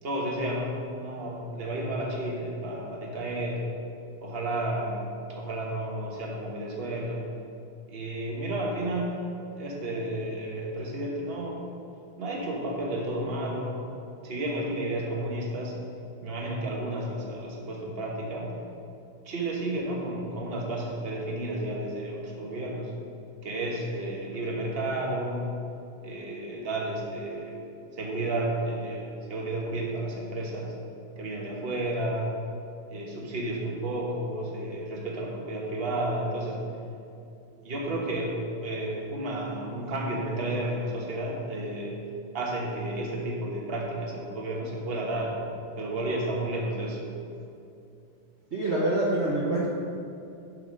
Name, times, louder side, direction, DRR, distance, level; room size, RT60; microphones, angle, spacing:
voice 1, 0.0-3.7 4.2-5.0 5.3-7.2 7.9-9.1 9.5-11.6 12.2-13.8 14.2-15.7 16.2-18.5 19.2-22.9 23.4-25.5 26.0-27.6 28.0-30.7 31.2-32.3 32.9-36.6 37.6-42.0 42.3-45.4 45.8-47.0, right 1 dB, 35° right, -2 dB, 1.2 m, -32 dB
voice 2, 48.5-49.7, right 2 dB, 50° right, -5 dB, 0.8 m, -25 dB
8.0 x 5.7 x 5.4 m, 2.6 s
omnidirectional pair, 2.4 m